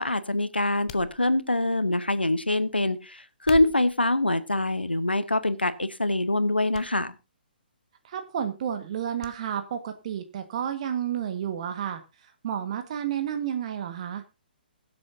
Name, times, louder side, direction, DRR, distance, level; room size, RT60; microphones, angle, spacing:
voice 1, 0.0-7.1, left 2 dB, 85° left, 13 dB, 1.2 m, -25 dB
sound 1, 0.9-1.7 3.3-4.0 4.8-5.2 5.6-5.7 6.7-6.9 7.2-7.3 9.2-9.4 9.7-9.8, left 10 dB, 35° left, 0.6 m, -42 dB
voice 2, 8.0-12.0 12.4-14.2, right 9 dB, 40° right, 8 dB, 1.5 m, -31 dB
23.0 x 7.7 x 2.7 m, 0.26 s
figure-of-eight pair, 130°, 5 cm